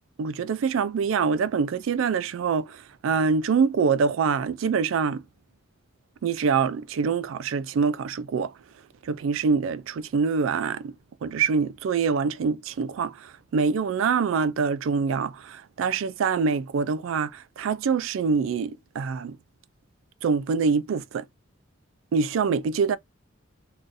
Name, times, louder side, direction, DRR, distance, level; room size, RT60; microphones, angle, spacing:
voice 1, 0.2-5.2 6.2-8.5 9.0-10.9 11.2-19.4 20.2-21.2 22.1-23.0, right 5 dB, 75° right, 0.3 m, -25 dB
2.5 x 2.3 x 3.9 m
head